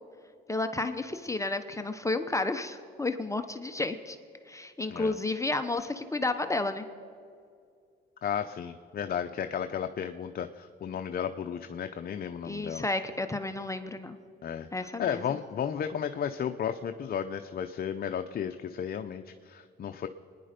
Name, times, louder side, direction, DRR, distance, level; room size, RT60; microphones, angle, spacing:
voice 1, 0.5-4.2 4.5-6.8 12.4-14.2 14.7-15.2, left 2 dB, 15° left, 8 dB, 0.8 m, -31 dB
voice 2, 8.2-12.8 14.4-20.1, left 8 dB, 50° left, 7 dB, 0.7 m, -34 dB
25.5 x 10.5 x 5.2 m, 2.3 s
cardioid pair, 90°, 20 cm